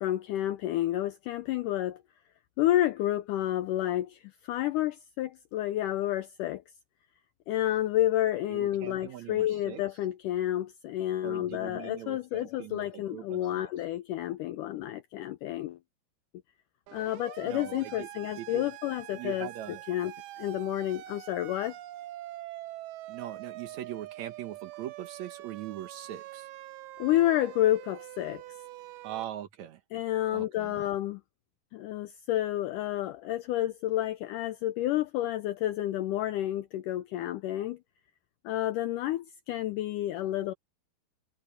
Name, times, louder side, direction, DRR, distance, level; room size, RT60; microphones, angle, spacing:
voice 1, 0.0-2.0 2.6-6.6 7.5-15.8 16.9-19.5 19.9-20.1 20.4-21.8 27.0-28.4 29.9-31.2 31.7-37.8 38.4-40.5, left 13 dB, 80° left, 1.9 m, -30 dB
voice 2, 8.5-9.8 11.2-13.7 17.4-18.1 18.4-18.7 19.1-19.8 23.1-26.5 29.0-29.8 30.3-30.8, right 12 dB, 70° right, 1.8 m, -41 dB
Siren, 16.9-29.2, right 15 dB, 90° right, 2.8 m, -45 dB
omnidirectional pair, 4.4 m